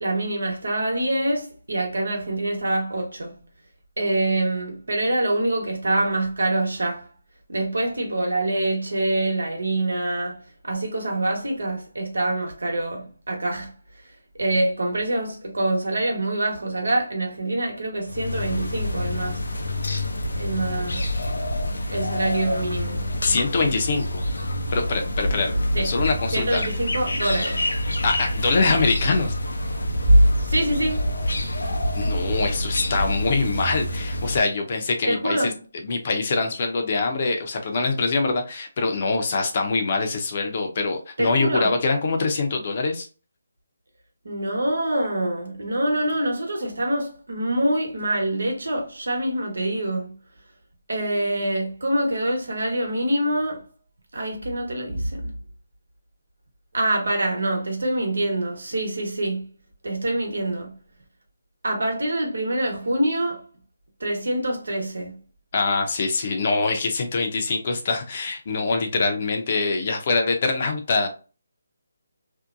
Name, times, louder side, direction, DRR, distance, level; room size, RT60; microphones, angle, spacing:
voice 1, 0.0-3.4 4.0-7.1 7.5-13.7 14.4-19.4 20.4-21.1 21.9-23.0 25.7-25.9 26.3-27.7 30.1-31.1 35.1-35.5 41.2-41.7 44.2-50.2 50.9-53.7 54.1-55.3 56.7-59.5 59.8-60.7 61.6-63.5 64.0-65.2, right 1 dB, 80° right, 1.1 m, -25 dB
sound 1, 18.1-34.4, left 1 dB, 85° left, 0.6 m, -27 dB
voice 2, 23.2-24.2 24.7-26.6 28.0-29.3 31.9-35.5 35.8-43.1 65.5-71.1, left 3 dB, 40° left, 0.6 m, -24 dB
2.7 x 2.1 x 2.5 m
figure-of-eight pair, 160°, 0 cm